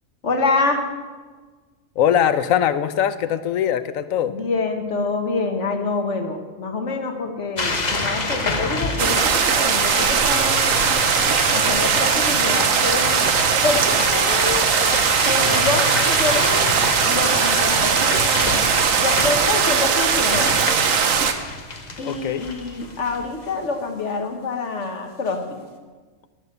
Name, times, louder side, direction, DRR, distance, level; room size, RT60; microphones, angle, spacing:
voice 1, 0.2-0.8 4.2-11.0 11.5-13.3 13.6-14.7 15.2-16.6 17.0-18.7 19.0-20.6 22.0-25.4, left 3 dB, 60° left, 5 dB, 1.7 m, -26 dB
voice 2, 2.0-4.4 22.0-22.5, left 9 dB, 85° left, 12 dB, 1.1 m, -21 dB
sound 1, 7.6-23.5, left 2 dB, 35° left, 1.3 m, -28 dB
sound 2, 9.0-21.3, right 6 dB, 80° right, 1.3 m, -19 dB
11.5 x 10.5 x 6.8 m, 1.4 s
omnidirectional pair, 1.4 m